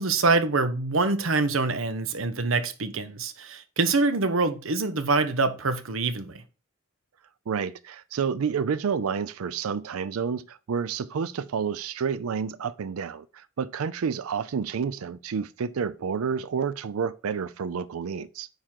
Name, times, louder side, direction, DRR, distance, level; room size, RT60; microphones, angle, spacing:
voice 1, 0.0-6.4, right 3 dB, 70° right, 0.9 m, -25 dB
voice 2, 7.5-18.5, right 6 dB, 90° right, 0.4 m, -29 dB
9.2 x 3.7 x 4.4 m
head